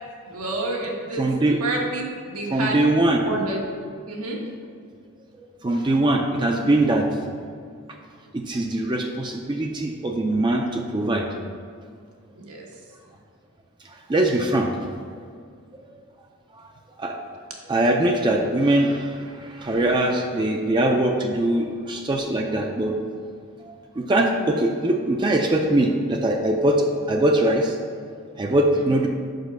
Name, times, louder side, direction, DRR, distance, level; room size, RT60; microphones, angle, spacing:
voice 1, 0.2-1.3 1.6-2.8 3.2-3.6 4.1-4.4 12.4-12.7 28.7-28.9, right 2 dB, 85° right, -1 dB, 1.3 m, -29 dB
voice 2, 1.1-1.6 2.5-3.2 5.6-7.1 8.3-11.3 14.1-14.7 17.0-17.2 17.7-19.1 19.4-22.9 23.6-27.7 28.4-29.1, right 1 dB, 20° right, 2 dB, 0.4 m, -22 dB
5.2 x 5.0 x 6.2 m, 2.2 s
head